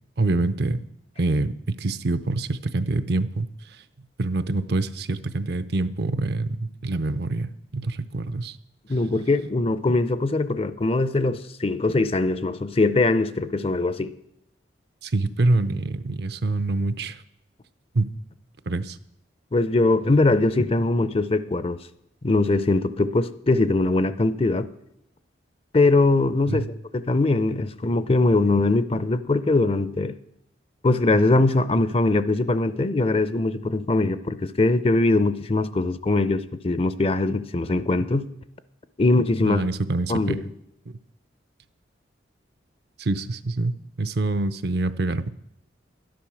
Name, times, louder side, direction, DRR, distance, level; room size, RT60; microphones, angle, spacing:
voice 1, 0.2-0.8 1.2-3.8 4.2-8.6 15.0-17.2 17.9-18.1 18.7-19.0 26.5-26.7 39.4-40.4 43.0-45.3, right 2 dB, 55° right, 13 dB, 0.6 m, -25 dB
voice 2, 8.9-14.1 19.5-21.8 22.2-24.7 25.7-26.6 26.9-30.1 30.8-38.3 39.0-39.6 40.1-40.5, left 2 dB, 30° left, 14 dB, 0.5 m, -21 dB
12.0 x 10.5 x 6.2 m, 0.79 s
head